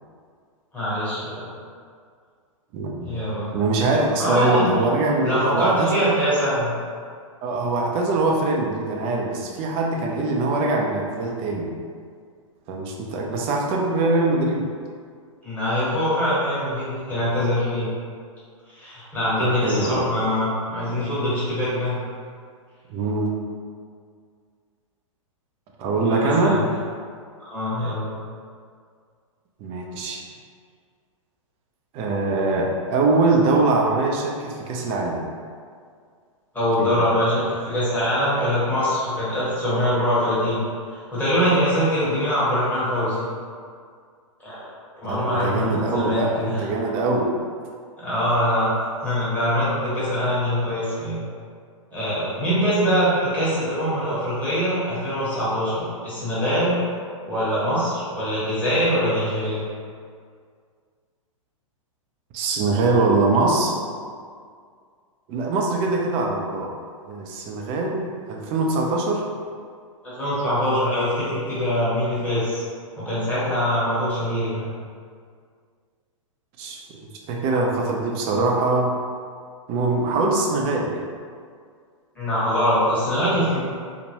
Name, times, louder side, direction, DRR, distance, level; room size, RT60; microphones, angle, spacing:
voice 1, 0.7-1.5 3.0-3.5 4.2-4.7 5.2-6.7 15.4-17.9 18.7-22.0 26.1-26.6 27.4-28.1 36.5-40.6 40.9-43.3 44.4-44.6 45.0-46.6 48.0-51.2 51.9-56.8 57.2-59.6 70.0-72.6 73.0-74.7 82.1-83.6, equal, 10° left, -11 dB, 1.3 m, -23 dB
voice 2, 2.7-3.1 3.5-6.0 7.4-11.7 12.7-14.7 19.4-20.1 22.9-23.3 25.8-26.6 29.6-30.2 31.9-35.3 36.8-37.0 45.1-47.3 62.3-63.7 65.3-66.7 67.1-69.3 76.6-78.9 79.7-81.1, right 3 dB, 35° right, 0 dB, 0.4 m, -23 dB
2.9 x 2.1 x 2.8 m, 2.1 s
hypercardioid pair, 110°, 17 cm